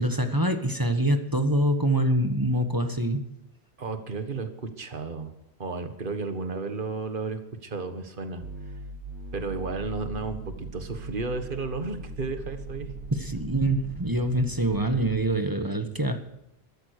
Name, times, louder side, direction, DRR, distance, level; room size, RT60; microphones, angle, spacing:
voice 1, 0.0-3.2 13.1-16.2, right 1 dB, 20° right, 7 dB, 1.4 m, -25 dB
voice 2, 3.8-5.3 5.6-8.4 9.3-12.9, right 4 dB, 55° right, 8 dB, 1.7 m, -33 dB
sound 1, 8.4-15.3, right 2 dB, 90° right, 1.6 m, -39 dB
15.0 x 13.5 x 6.6 m, 0.83 s
omnidirectional pair, 1.1 m